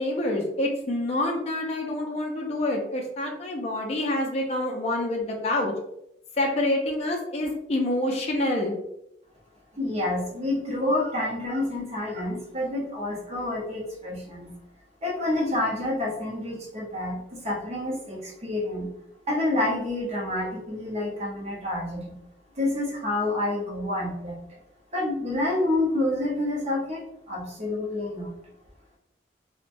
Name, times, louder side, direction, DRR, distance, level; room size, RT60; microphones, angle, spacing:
voice 1, 0.0-5.7 6.4-8.8, left 1 dB, 35° left, 0 dB, 0.4 m, -27 dB
voice 2, 9.7-14.5 15.0-18.9 19.3-22.1 22.5-24.6 24.9-28.4, left 1 dB, 35° right, -3 dB, 0.8 m, -28 dB
3.1 x 2.1 x 2.5 m, 0.83 s
head